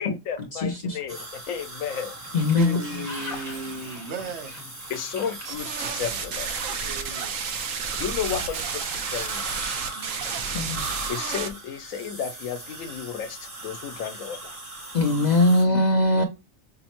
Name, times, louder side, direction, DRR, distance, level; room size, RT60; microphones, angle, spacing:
voice 1, 0.0-2.2 4.9-6.5 7.9-9.5 11.1-14.6, left 8 dB, 90° left, 1.1 m, -33 dB
voice 2, 0.5-1.0 2.3-2.8 10.5-10.8 14.9-16.2, left 2 dB, 50° left, 0.5 m, -21 dB
sound 1, 1.1-15.6, right 2 dB, 30° right, 1.0 m, -39 dB
Sliding door, 1.8-6.4 7.5-11.2, left 1 dB, ahead, 0.9 m, -43 dB
voice 3, 2.5-4.6 6.8-7.3 9.9-10.3 15.7-15.8 16.1-16.2, right 3 dB, 65° right, 0.9 m, -36 dB
sound 2, 5.5-11.5, right 6 dB, 80° right, 1.1 m, -31 dB
5.7 x 2.1 x 2.9 m
omnidirectional pair, 1.4 m